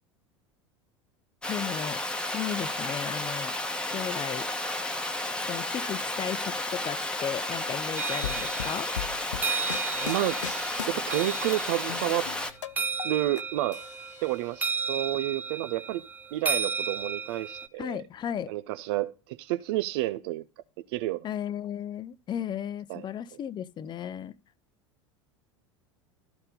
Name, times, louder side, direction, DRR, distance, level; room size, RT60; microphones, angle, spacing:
Water, 1.4-12.5, left 1 dB, 5° left, 1.1 m, -32 dB
voice 1, 1.5-2.0 2.3-3.6 3.9-4.5 5.4-8.9 17.8-18.5 21.2-24.3, left 9 dB, 30° left, 0.7 m, -35 dB
sound 1, 8.0-17.7, right 4 dB, 10° right, 0.6 m, -34 dB
sound 2, 8.2-11.6 11.9-13.4 13.7-14.6, left 9 dB, 80° left, 0.4 m, -38 dB
voice 2, 10.0-12.3 13.0-13.8 14.2-16.0 16.3-18.0 18.5-20.4 20.9-21.3 22.9-23.0, right 15 dB, 55° right, 0.5 m, -30 dB
13.0 x 4.4 x 5.3 m
figure-of-eight pair, 80°, 15 cm